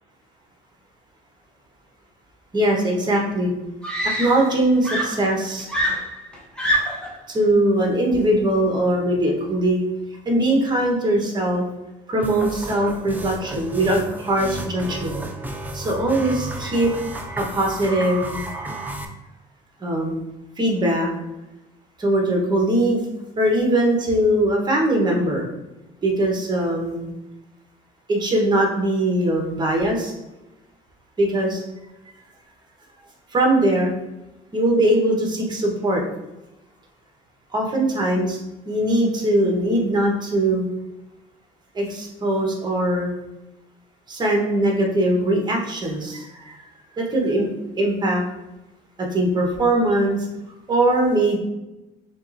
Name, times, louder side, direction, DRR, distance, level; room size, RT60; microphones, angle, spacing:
voice 1, 2.5-3.5 4.2-5.7 7.3-9.8 10.2-11.6 12.1-15.1 15.7-16.9 17.4-18.4 19.8-20.2 20.6-21.1 22.0-23.0 23.4-25.5 26.0-27.1 28.1-30.1 31.2-31.6 33.3-33.9 34.5-36.0 37.5-38.4 38.7-40.7 41.7-43.1 44.1-46.6 47.0-47.5 47.8-48.2 49.0-50.2 50.7-51.4, right 1 dB, 25° right, 0 dB, 1.1 m, -21 dB
Screaming, 3.0-3.1 3.8-4.6 4.8-7.1 8.1-8.4, equal, 5° left, 1.0 m, -25 dB
sound 1, 12.2-19.1, right 2 dB, 10° right, 0.5 m, -33 dB
6.3 x 2.5 x 2.6 m, 0.98 s
cardioid pair, 110°, 17 cm